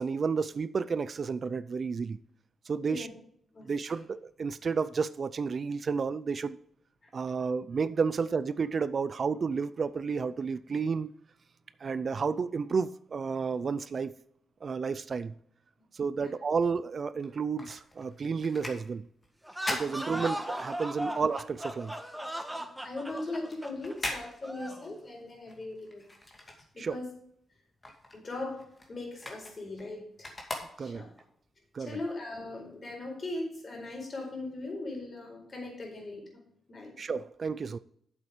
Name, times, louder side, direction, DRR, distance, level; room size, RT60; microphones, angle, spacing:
voice 1, 0.0-2.2 2.7-3.1 3.6-6.6 7.1-11.1 11.8-14.1 14.6-15.3 15.9-19.1 19.7-22.0 26.8-27.0 30.8-31.1 31.7-32.0 37.0-37.8, right 5 dB, 45° right, 0.4 m, -31 dB
voice 2, 3.5-4.0 7.0-7.1 16.2-16.3 19.9-20.0 22.6-26.0 26.7-27.1 28.1-30.4 30.8-31.1 31.8-37.0, left 2 dB, 40° left, 4.3 m, -39 dB
sound 1, 17.1-20.8 21.2-27.2 27.5-31.3 31.8-31.9, left 1 dB, 25° left, 2.4 m, -41 dB
sound 2, 19.4-24.9, equal, 5° right, 1.2 m, -37 dB
8.5 x 7.3 x 5.0 m
cardioid pair, 100°, 0 cm